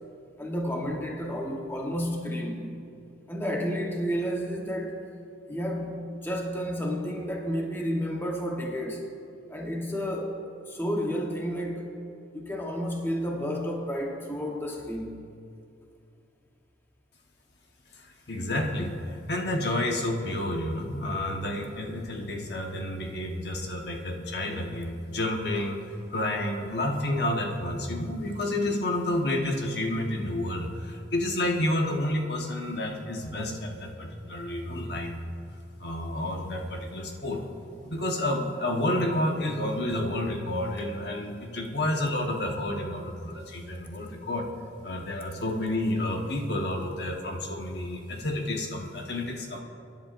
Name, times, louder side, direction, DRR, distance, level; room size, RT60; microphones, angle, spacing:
voice 1, 0.4-2.8 3.3-5.1 5.5-9.1 9.5-10.4 10.7-11.9 12.3-15.2, equal, 10° left, 0 dB, 1.1 m, -31 dB
voice 2, 18.0-25.8 26.1-35.3 35.8-37.4 37.8-44.5 44.8-49.6, left 1 dB, 60° left, 1 dB, 1.2 m, -30 dB
25.5 x 10.5 x 2.6 m, 2.6 s
head